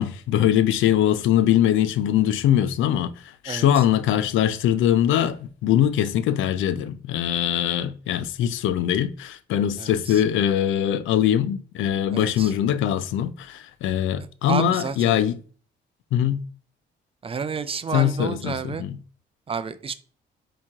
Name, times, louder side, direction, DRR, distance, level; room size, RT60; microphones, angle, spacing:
voice 1, 0.0-15.4 16.1-16.4 17.9-19.0, left 10 dB, 80° left, 0.4 m, -22 dB
voice 2, 3.4-3.9 9.8-10.2 12.1-12.5 14.5-15.2 17.2-18.8 19.5-19.9, right 5 dB, 30° right, 0.4 m, -30 dB
4.4 x 2.9 x 3.5 m
cardioid pair, 90°, 20 cm